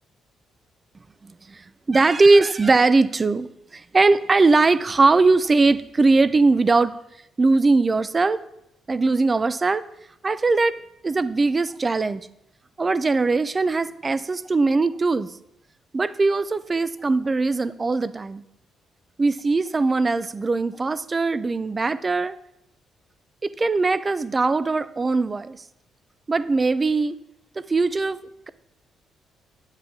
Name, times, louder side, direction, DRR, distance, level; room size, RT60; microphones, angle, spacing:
voice 1, 1.2-6.9 7.4-8.4 8.9-9.8 10.2-10.8 11.0-12.2 12.8-15.3 15.9-18.4 19.2-22.4 23.4-25.6 26.3-27.2 27.6-28.2, right 3 dB, 30° right, 15 dB, 0.4 m, -20 dB
8.5 x 8.1 x 2.7 m, 0.82 s
cardioid pair, 90°, 0 cm